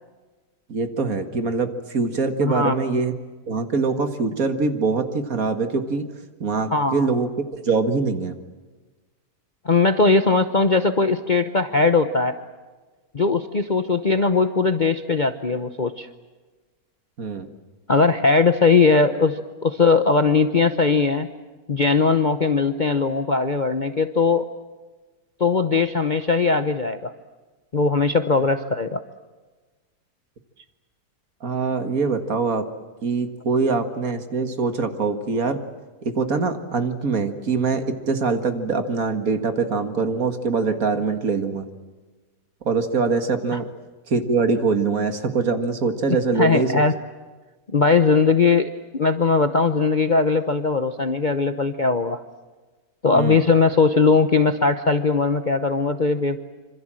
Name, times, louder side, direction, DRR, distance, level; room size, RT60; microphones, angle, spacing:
voice 1, 0.7-3.1 3.5-6.1 6.4-8.4 17.2-17.5 31.4-32.6 33.0-35.7 36.0-41.7 42.7-43.7 44.1-46.8 53.1-53.4, right 4 dB, 55° right, 8 dB, 2.2 m, -23 dB
voice 2, 2.4-2.8 6.7-7.1 9.6-12.4 13.1-16.1 17.9-21.3 21.7-24.5 25.4-27.1 27.7-29.0 43.5-43.6 46.4-46.9 47.7-52.2 53.0-56.4, left 4 dB, 35° left, 8 dB, 0.8 m, -19 dB
26.5 x 26.0 x 7.6 m, 1.3 s
omnidirectional pair, 1.9 m